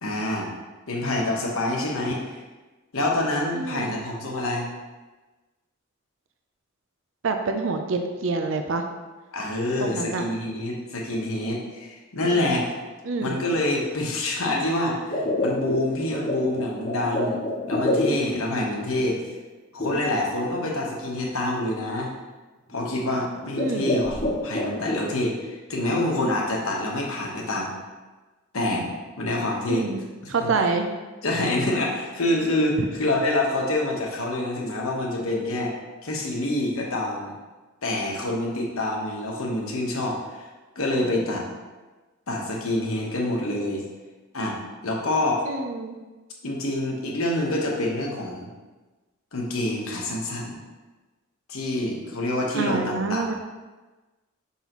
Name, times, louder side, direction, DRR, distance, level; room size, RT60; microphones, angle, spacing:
voice 1, 0.0-0.5 0.9-2.2 2.9-4.7 9.3-12.6 13.2-19.2 19.7-22.1 22.7-27.8 28.5-28.9 29.2-29.9 30.2-30.5 31.2-35.7 36.0-37.3 37.8-40.5 40.7-41.4 42.3-43.8 44.3-44.6 44.8-45.4 46.4-48.5 49.3-50.6 51.5-53.3, left 1 dB, 85° left, -1 dB, 1.2 m, -26 dB
voice 2, 3.5-4.0 7.2-8.8 9.8-10.3 12.3-12.6 13.0-13.4 23.6-23.9 29.7-30.9 45.4-46.0 52.6-53.3, right 4 dB, 65° right, 5 dB, 0.5 m, -27 dB
sound 1, 15.0-18.6 19.8-20.5 21.1-21.2 21.8-22.1 22.7-23.0 23.4-25.0, left 1 dB, 40° left, 1.0 m, -27 dB
5.6 x 5.5 x 3.0 m, 1.2 s
head